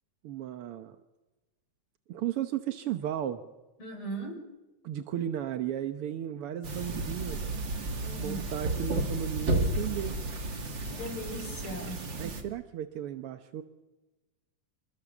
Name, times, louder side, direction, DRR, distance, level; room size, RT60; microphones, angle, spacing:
voice 1, 0.2-1.0 2.1-3.4 4.8-7.4 8.2-10.2 12.2-13.6, right 11 dB, 65° right, 8 dB, 1.5 m, -34 dB
voice 2, 3.8-4.4 8.0-8.4 10.8-12.0, right 1 dB, 40° left, 2 dB, 7.0 m, -38 dB
sound 1, 6.6-12.4, right 2 dB, 40° right, 3.0 m, -32 dB
27.5 x 24.5 x 7.2 m, 1.1 s
omnidirectional pair, 3.5 m